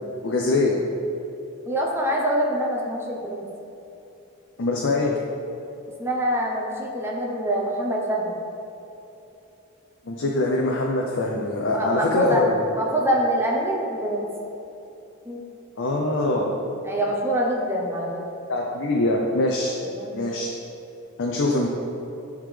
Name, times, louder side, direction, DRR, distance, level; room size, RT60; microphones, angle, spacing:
voice 1, 0.2-0.8 4.6-5.1 10.1-12.6 15.8-16.5 18.5-19.7 20.1-20.5 21.2-21.7, left 2 dB, 60° left, -1 dB, 0.6 m, -23 dB
voice 2, 1.7-3.4 6.0-8.4 11.7-12.4 12.7-14.3 15.2-15.4 16.8-18.2 19.8-20.2, equal, 10° right, -2 dB, 0.8 m, -25 dB
10.5 x 3.6 x 3.3 m, 2.9 s
head